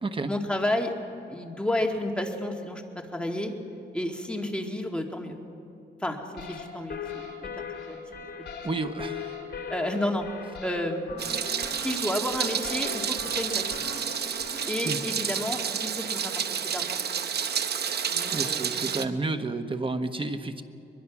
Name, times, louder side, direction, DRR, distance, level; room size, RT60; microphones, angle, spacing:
voice 1, 0.3-0.9 1.3-2.8 3.1-3.6 3.9-5.4 6.0-8.0 8.4-8.5 9.7-10.2 10.6-11.3 11.8-13.8 14.7-17.0 18.1-18.7, left 1 dB, 5° left, 2 dB, 2.1 m, -31 dB
sound 1, 6.4-14.7, left 6 dB, 65° left, 2.9 m, -39 dB
voice 2, 8.6-9.3 14.8-15.0 18.3-20.6, right 3 dB, 30° right, 8 dB, 1.1 m, -31 dB
Meow, 11.2-19.0, right 7 dB, 60° right, 0.9 m, -30 dB
22.5 x 22.0 x 6.1 m, 2.7 s
cardioid pair, 105°, 18 cm